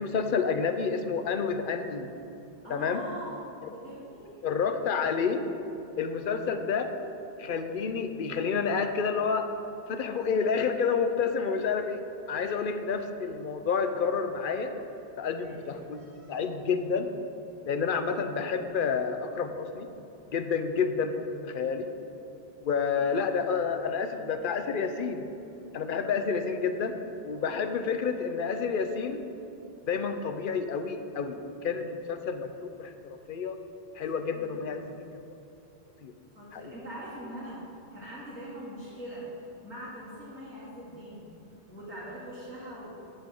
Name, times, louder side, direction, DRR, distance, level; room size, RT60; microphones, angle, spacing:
voice 1, 0.0-2.1 2.7-3.0 4.4-5.4 6.0-6.9 7.4-9.5 9.9-12.0 12.3-14.7 15.2-16.0 16.3-17.1 17.7-19.9 20.3-21.9 22.6-25.3 25.7-26.9 27.2-29.2 29.9-32.5 32.8-32.9 33.3-33.6 34.0-35.1 36.0-36.1 36.5-36.6, left 5 dB, 60° left, 8 dB, 0.7 m, -29 dB
voice 2, 2.6-3.4 3.7-4.4 12.3-12.7 15.4-16.5 23.0-23.3 34.0-34.7 36.3-37.6 37.9-39.3 39.6-41.3 41.7-43.1, equal, 10° left, -12 dB, 2.3 m, -43 dB
9.5 x 4.5 x 6.9 m, 2.9 s
omnidirectional pair, 1.1 m